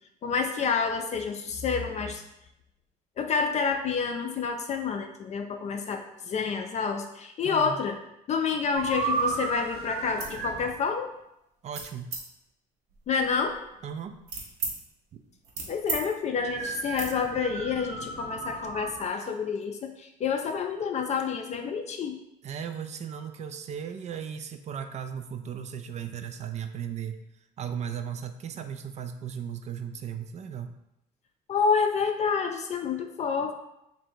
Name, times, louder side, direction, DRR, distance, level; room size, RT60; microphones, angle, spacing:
voice 1, 0.2-2.2 3.2-8.0 8.3-11.1 13.1-13.6 15.7-22.2 31.5-33.5, left 5 dB, 40° left, 5 dB, 0.4 m, -28 dB
voice 2, 7.4-7.8 11.6-12.1 13.8-14.2 22.4-27.2 27.6-30.7, right 8 dB, 40° right, 8 dB, 0.4 m, -36 dB
sound 1, 8.7-10.7 16.4-19.1, right 4 dB, 65° right, 0.7 m, -33 dB
sound 2, 10.2-10.4 10.8-11.2 11.7-12.2 12.9-14.7 15.2-16.0 16.3-16.5 16.9-17.1, right 4 dB, 80° right, 1.0 m, -36 dB
3.1 x 2.7 x 4.5 m, 0.83 s
cardioid pair, 110°, 17 cm